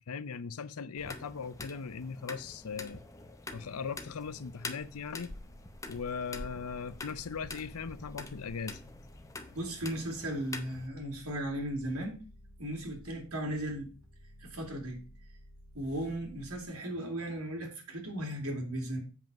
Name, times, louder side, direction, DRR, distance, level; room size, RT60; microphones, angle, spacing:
voice 1, 0.1-3.0 3.5-5.3 5.9-8.8, left 5 dB, 90° left, 0.6 m, -39 dB
sound 1, 1.0-10.9, left 3 dB, 15° left, 0.6 m, -46 dB
sound 2, 5.2-16.6, left 1 dB, 60° left, 2.1 m, -55 dB
voice 2, 9.5-12.2 12.6-13.9 14.4-15.0 15.7-19.0, right 1 dB, 85° right, 2.5 m, -36 dB
7.5 x 5.6 x 5.2 m
head